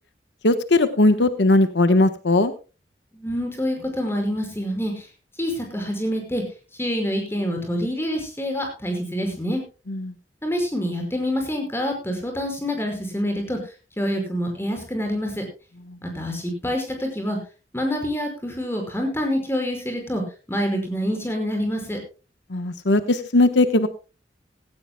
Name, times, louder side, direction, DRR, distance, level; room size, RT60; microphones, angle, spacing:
voice 1, 0.4-2.5 9.9-10.1 15.9-16.0 22.5-23.9, left 2 dB, 80° left, 11 dB, 1.1 m, -19 dB
voice 2, 3.1-5.1 5.4-6.4 6.8-9.6 10.4-13.6 14.0-15.4 16.0-17.4 17.7-20.2 20.5-22.0, equal, 15° left, 3 dB, 5.4 m, -26 dB
17.5 x 17.0 x 2.2 m, 0.32 s
head